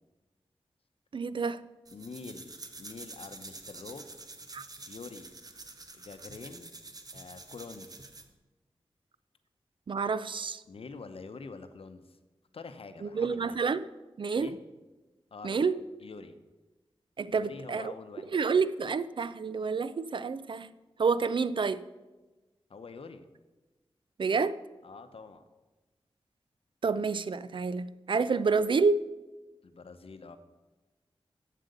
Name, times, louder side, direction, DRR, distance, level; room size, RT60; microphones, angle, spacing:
voice 1, 1.1-1.6 4.5-4.6 9.9-10.6 13.0-13.8 14.2-14.5 15.4-15.8 17.2-17.9 18.3-20.7 21.0-21.8 24.2-24.6 26.8-29.0, right 5 dB, 55° right, 14 dB, 0.4 m, -28 dB
voice 2, 1.9-4.1 4.9-5.3 5.9-6.7 7.1-8.1 10.7-12.2 12.5-13.6 14.3-14.6 15.3-15.6 16.0-16.4 17.3-18.3 22.7-23.3 24.8-25.4 29.6-30.4, left 4 dB, 70° left, 9 dB, 0.8 m, -46 dB
sound 1, 1.9-8.3, right 3 dB, 40° right, 0.8 m, -47 dB
7.8 x 7.5 x 6.7 m, 1.2 s
wide cardioid pair, 100°, 10 cm